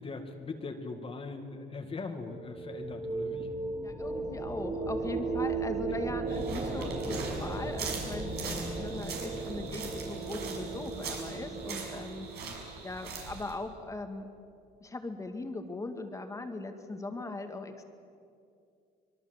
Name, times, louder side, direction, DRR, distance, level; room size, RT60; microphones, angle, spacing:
voice 1, 0.0-3.6 5.9-6.0 12.4-12.6, left 3 dB, 35° left, 4 dB, 2.2 m, -40 dB
sound 1, 2.2-12.8, right 3 dB, 45° right, 5.4 m, -36 dB
voice 2, 3.8-14.3 14.8-17.8, left 2 dB, 20° left, 6 dB, 2.2 m, -40 dB
sound 2, 6.3-13.5, right 5 dB, 75° right, 6.1 m, -42 dB
24.5 x 22.5 x 8.0 m, 2.5 s
cardioid pair, 110°, 17 cm